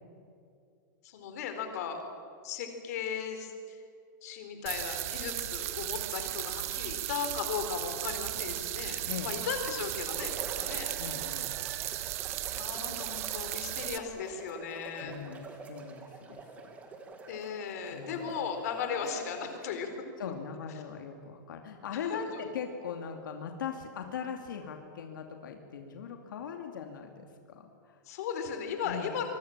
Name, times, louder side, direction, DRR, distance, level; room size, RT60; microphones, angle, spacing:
voice 1, 1.0-2.0 2.4-3.8 4.2-10.9 12.5-15.1 17.3-19.9 21.9-22.2 28.1-29.4, left 7 dB, 50° left, 6 dB, 4.1 m, -36 dB
sound 1, 4.7-14.0, right 15 dB, 45° right, 1.2 m, -36 dB
voice 2, 9.1-9.4 11.0-11.6 15.0-16.4 17.9-18.3 20.2-28.0 28.8-29.2, left 7 dB, 90° left, 4 dB, 2.6 m, -40 dB
sound 2, 10.0-19.9, right 4 dB, 15° right, 2.2 m, -47 dB
25.5 x 23.5 x 7.5 m, 2.4 s
supercardioid pair, 170°, 11 cm